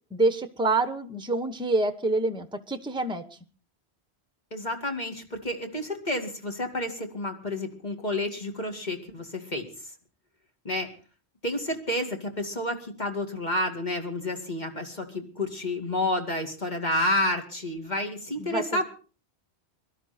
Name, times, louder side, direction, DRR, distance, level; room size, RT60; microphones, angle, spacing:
voice 1, 0.1-3.3 18.4-18.9, right 2 dB, 5° right, 10 dB, 1.1 m, -27 dB
voice 2, 4.5-9.7 10.6-10.9 11.4-18.9, left 1 dB, 40° left, 3 dB, 2.5 m, -30 dB
23.0 x 12.5 x 4.3 m, 0.38 s
omnidirectional pair, 1.1 m